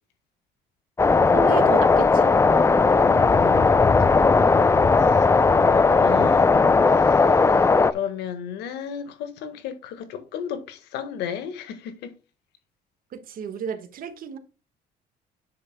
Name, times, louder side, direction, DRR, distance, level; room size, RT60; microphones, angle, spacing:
sound 1, 1.0-7.9, left 4 dB, 15° left, 0.5 m, -17 dB
voice 1, 1.3-2.3 13.1-14.4, right 7 dB, 55° right, 1.5 m, -32 dB
voice 2, 3.0-3.8 4.5-7.6 7.9-12.1, left 8 dB, 85° left, 1.5 m, -35 dB
9.7 x 7.5 x 2.2 m
cardioid pair, 110°, 17 cm